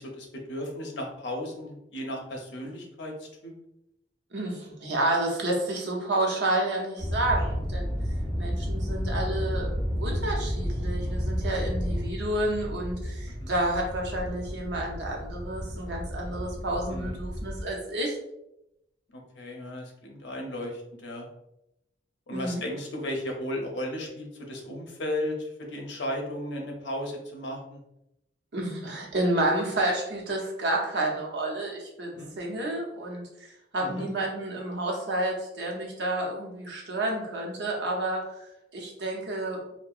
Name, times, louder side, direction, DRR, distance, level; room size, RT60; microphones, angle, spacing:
voice 1, 0.0-3.5 13.4-13.5 16.9-17.2 19.1-21.3 22.3-27.8 32.1-32.3 33.8-34.1, left 1 dB, 80° left, 0 dB, 0.6 m, -35 dB
voice 2, 4.3-7.9 8.3-9.7 10.0-18.2 22.3-22.6 28.5-38.2 38.7-39.6, right 1 dB, 70° right, -2 dB, 0.7 m, -30 dB
sound 1, 7.0-17.7, equal, 30° right, 0.6 m, -31 dB
2.7 x 2.1 x 2.4 m, 0.85 s
head